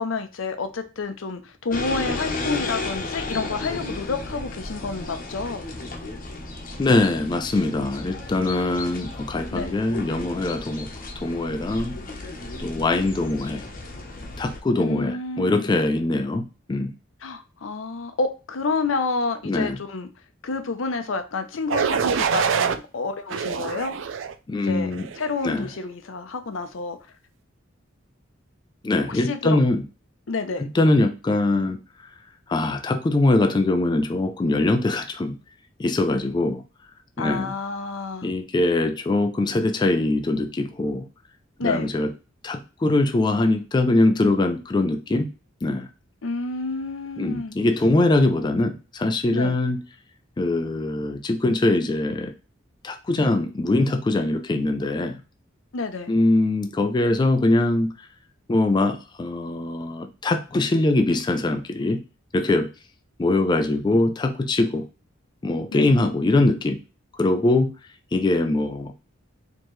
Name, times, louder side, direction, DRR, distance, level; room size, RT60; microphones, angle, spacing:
voice 1, 0.0-5.7 9.5-9.7 14.8-15.7 17.2-20.1 20.4-23.9 24.5-27.0 29.1-29.6 30.3-30.6 37.2-38.3 41.6-41.9 46.2-47.5 49.3-49.6 55.7-56.1 65.7-65.8, left 4 dB, 80° left, 8 dB, 0.6 m, -29 dB
sound 1, 1.7-14.6, left 2 dB, 45° left, 0.8 m, -34 dB
voice 2, 6.8-10.9 11.2-12.0 12.6-13.7 14.4-16.9 19.4-19.8 24.5-25.1 25.4-25.7 28.8-29.8 30.6-32.2 32.5-35.4 35.8-36.6 37.2-37.5 38.2-41.1 41.6-42.1 42.4-45.3 45.6-45.9 47.2-49.8 50.4-52.3 52.8-55.2 56.1-58.1 58.5-62.0 62.3-62.7 63.2-64.9 65.4-66.8 67.1-67.7 68.1-68.9, left 2 dB, 20° left, 7 dB, 0.3 m, -22 dB
sound 2, 21.7-22.8 23.3-24.3 24.9-25.3, right 6 dB, 70° right, 0.4 m, -25 dB
4.5 x 2.9 x 3.1 m, 0.31 s
head